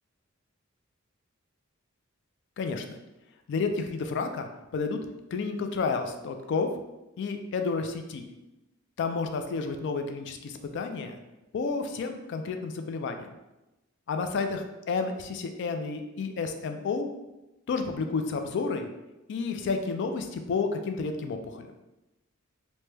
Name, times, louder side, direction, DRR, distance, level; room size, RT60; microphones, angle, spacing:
voice 1, 3.5-5.0 5.3-6.7 7.2-8.3 9.0-11.2 11.5-13.3 14.1-17.1 17.7-18.9 19.3-21.6, left 4 dB, 55° left, 6 dB, 0.3 m, -31 dB
3.0 x 2.2 x 3.2 m, 1.0 s
head